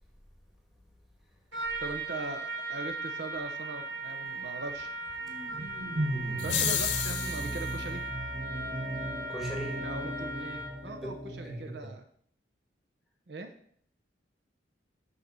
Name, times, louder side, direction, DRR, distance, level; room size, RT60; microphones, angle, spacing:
Trumpet, 1.5-10.9, right 3 dB, 85° right, 2.0 m, -38 dB
voice 1, 1.8-5.2 6.4-8.1 9.8-12.0 13.3-13.5, right 3 dB, 65° right, 6 dB, 0.7 m, -41 dB
sound 1, 5.3-11.6, right 1 dB, 45° right, 1.2 m, -36 dB
sound 2, 6.4-7.7, left 9 dB, 75° left, 0.8 m, -31 dB
voice 2, 9.3-9.8 10.9-11.9, right 1 dB, ahead, -1 dB, 1.7 m, -39 dB
8.0 x 4.0 x 6.0 m, 0.62 s
head